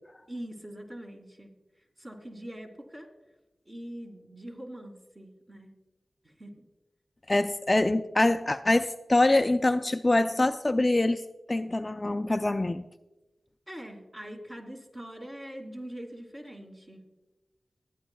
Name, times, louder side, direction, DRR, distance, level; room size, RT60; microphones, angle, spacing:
voice 1, 0.3-1.5 2.0-3.1 3.7-5.8 6.2-6.6 13.7-17.1, right 1 dB, 30° right, 1 dB, 2.6 m, -43 dB
voice 2, 7.3-11.2 11.5-12.8, left 2 dB, 30° left, 9 dB, 0.4 m, -24 dB
23.5 x 9.2 x 2.3 m, 1.0 s
cardioid pair, 55°, 0 cm